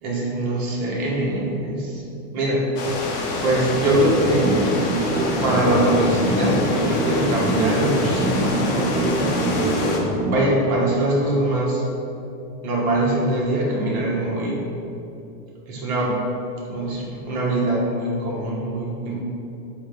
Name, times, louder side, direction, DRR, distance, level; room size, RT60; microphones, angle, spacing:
voice 1, 0.0-2.0 2.3-2.7 3.4-4.6 5.3-9.4 10.3-11.8 12.6-14.6 15.7-16.2 16.7-19.1, right 1 dB, 70° right, -4 dB, 1.4 m, -23 dB
sound 1, 2.8-10.0, left 2 dB, 40° left, 0.6 m, -27 dB
sound 2, 3.8-10.4, right 1 dB, 35° right, 0.5 m, -24 dB
3.6 x 3.1 x 4.7 m, 2.8 s
supercardioid pair, 155°, 46 cm